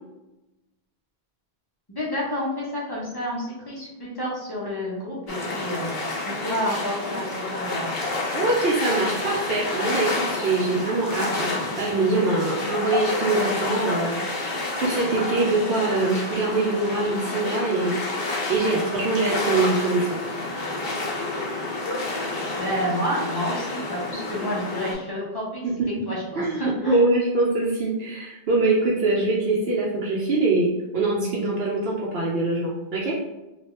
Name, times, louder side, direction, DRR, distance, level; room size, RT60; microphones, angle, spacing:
voice 1, 1.9-5.9 6.2-7.9 22.6-25.6 26.1-27.0, equal, 25° left, -5 dB, 0.7 m, -29 dB
sound 1, 5.3-24.9, left 2 dB, 65° left, 0.9 m, -29 dB
voice 2, 8.3-18.0 18.3-20.1 25.6-25.9 26.4-33.2, right 2 dB, 70° right, -4 dB, 0.8 m, -24 dB
3.0 x 2.3 x 3.0 m, 1.0 s
omnidirectional pair, 1.1 m